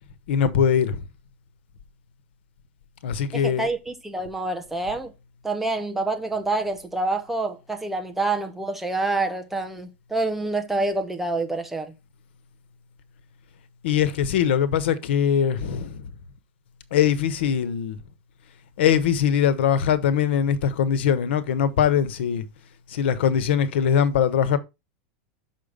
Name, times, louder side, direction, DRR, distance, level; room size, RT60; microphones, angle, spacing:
voice 1, 0.3-1.0 3.0-3.7 13.8-16.1 16.9-18.0 18.8-22.4 22.9-24.6, left 8 dB, 80° left, 1.2 m, -22 dB
voice 2, 3.3-5.1 5.4-11.9, right 2 dB, 5° right, 0.9 m, -27 dB
6.2 x 5.8 x 5.1 m
supercardioid pair, 170°, 6 cm